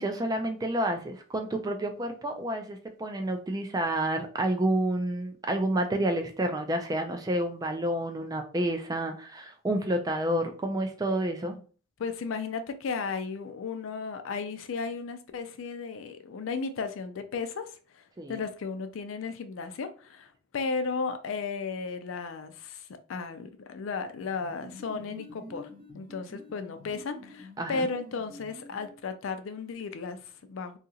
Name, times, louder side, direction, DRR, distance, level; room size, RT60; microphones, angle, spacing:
voice 1, 0.0-11.6 18.2-18.4 27.6-27.9, right 1 dB, 20° right, 0.3 m, -29 dB
voice 2, 12.0-30.8, left 4 dB, 65° left, 0.4 m, -35 dB
sound 1, 24.2-29.1, equal, 35° right, 0.8 m, -48 dB
2.8 x 2.4 x 2.7 m
head